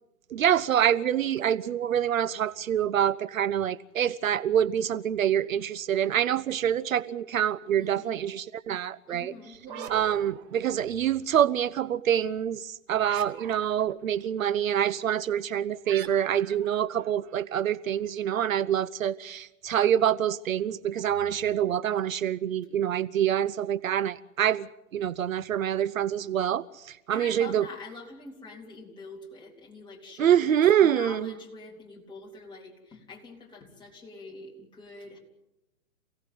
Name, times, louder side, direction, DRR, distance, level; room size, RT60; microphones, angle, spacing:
voice 1, 0.3-9.3 9.9-24.7 24.9-27.7 30.2-31.3, right 10 dB, 70° right, 0.8 m, -26 dB
voice 2, 7.8-8.2 9.1-10.1 27.1-35.2, left 3 dB, 10° left, 3.8 m, -45 dB
sound 1, 9.5-11.1 13.0-14.0 15.9-17.7, right 9 dB, 35° right, 1.7 m, -43 dB
28.0 x 17.5 x 7.8 m
hypercardioid pair, 125°, 43 cm